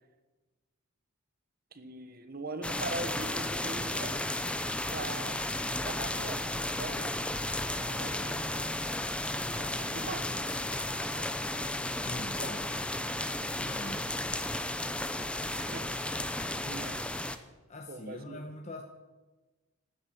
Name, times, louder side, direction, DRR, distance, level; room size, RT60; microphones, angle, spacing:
voice 1, 1.7-4.3 4.9-8.6 9.4-11.5 15.6-17.0 17.9-18.4, right 2 dB, 45° right, 9 dB, 1.4 m, -43 dB
sound 1, 2.6-17.4, left 1 dB, 5° left, 0.7 m, -34 dB
voice 2, 12.0-12.7 13.4-14.1 17.7-18.8, left 1 dB, 35° left, 3 dB, 1.2 m, -42 dB
13.0 x 12.0 x 8.8 m, 1.2 s
head